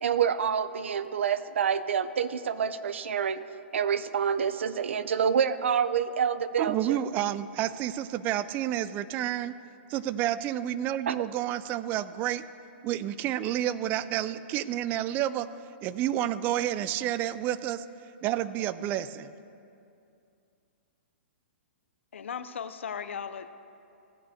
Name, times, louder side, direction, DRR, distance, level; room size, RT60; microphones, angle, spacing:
voice 1, 0.0-3.4 3.7-7.0 11.1-11.2, right 7 dB, 80° right, 14 dB, 0.6 m, -27 dB
voice 2, 6.6-9.6 9.9-12.4 12.8-15.5 15.8-17.8 18.2-19.3, right 12 dB, 30° right, 15 dB, 0.4 m, -30 dB
voice 3, 22.1-23.5, left 7 dB, 85° left, 11 dB, 0.6 m, -37 dB
16.5 x 8.5 x 2.8 m, 2.6 s
hypercardioid pair, 140°, 6 cm